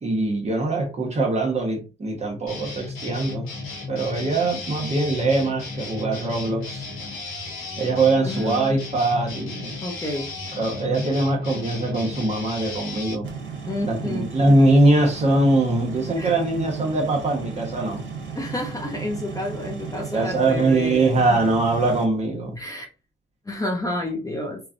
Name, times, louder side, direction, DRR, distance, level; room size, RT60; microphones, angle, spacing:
voice 1, 0.0-3.5 3.9-6.9 7.8-9.7 10.6-13.3 13.8-18.0 20.0-22.6, right 2 dB, 35° right, 1 dB, 1.1 m, -22 dB
sound 1, 2.5-13.1, left 3 dB, 85° left, 1.1 m, -34 dB
voice 2, 8.2-8.8 9.8-10.3 13.7-14.5 16.2-16.3 18.3-21.4 22.6-22.9 23.5-24.6, left 1 dB, 15° left, 1 dB, 0.7 m, -30 dB
sound 2, 13.2-22.0, right 6 dB, 70° right, 1.0 m, -35 dB
3.1 x 2.3 x 2.5 m, 0.32 s
cardioid pair, 90°, 20 cm